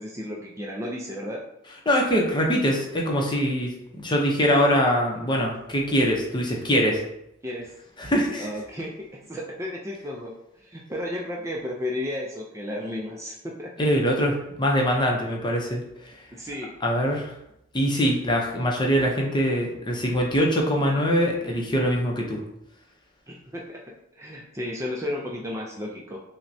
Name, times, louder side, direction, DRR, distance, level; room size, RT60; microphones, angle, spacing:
voice 1, 0.0-1.4 7.4-7.7 8.4-8.9 9.3-10.3 10.6-13.7 16.3-16.7 23.3-23.8 24.2-26.2, left 1 dB, 15° right, -2 dB, 0.4 m, -33 dB
voice 2, 1.9-7.0 8.0-8.5 13.8-15.8 16.8-17.3 17.7-22.4, equal, 25° left, 0 dB, 0.6 m, -23 dB
5.7 x 2.1 x 2.7 m, 0.80 s
head